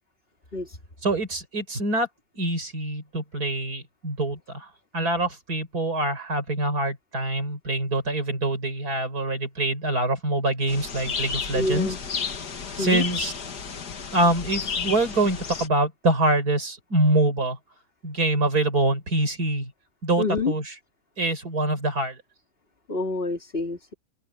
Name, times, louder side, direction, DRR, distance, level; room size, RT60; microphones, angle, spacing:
voice 1, 1.0-2.1 2.3-11.9 12.8-13.3 14.1-17.6 18.0-19.7 20.0-20.8 21.2-22.2, right 2 dB, 70° right, 5.7 m, -25 dB
sound 1, 10.7-15.7, left 5 dB, 85° left, 2.4 m, -32 dB
voice 2, 11.5-12.0 12.8-13.0 20.2-20.5 22.9-23.9, left 3 dB, 35° left, 3.2 m, -27 dB
omnidirectional pair, 1.7 m